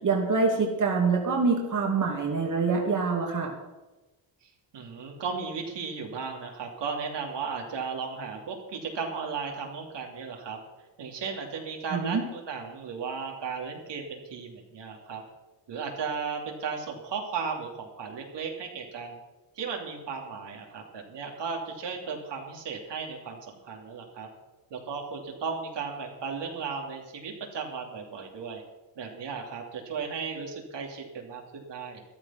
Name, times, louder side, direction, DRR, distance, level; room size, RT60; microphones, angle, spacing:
voice 1, 0.0-3.5 11.9-12.2, right 4 dB, 40° right, 0 dB, 2.7 m, -25 dB
voice 2, 4.7-10.6 11.0-15.2 15.7-19.2 19.6-24.3 24.7-28.6 29.0-32.0, right 5 dB, 60° right, 1 dB, 3.0 m, -35 dB
14.0 x 12.5 x 5.8 m, 1.1 s
cardioid pair, 125°, 47 cm